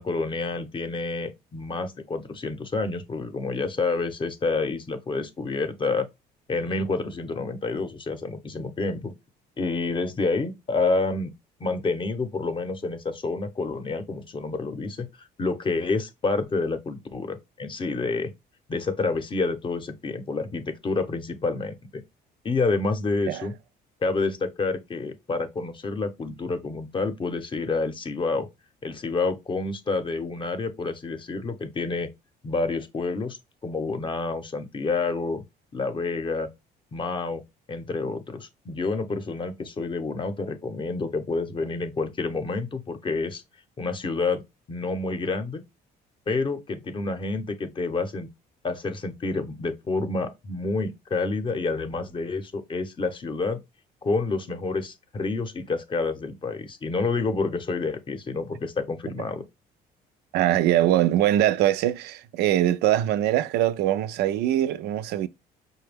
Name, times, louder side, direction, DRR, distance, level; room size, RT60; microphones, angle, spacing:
voice 1, 0.0-6.1 6.5-9.1 9.6-11.3 11.6-18.3 18.7-22.0 22.4-23.5 24.0-28.5 28.8-32.1 32.4-33.4 33.6-35.4 35.7-36.5 36.9-37.4 37.7-43.4 43.8-44.4 44.7-45.6 46.3-48.3 48.6-53.6 54.0-59.4, left 3 dB, 30° left, 0.7 m, -28 dB
voice 2, 60.3-65.3, right 12 dB, 80° right, 0.4 m, -22 dB
5.0 x 2.2 x 3.4 m
cardioid pair, 110°, 17 cm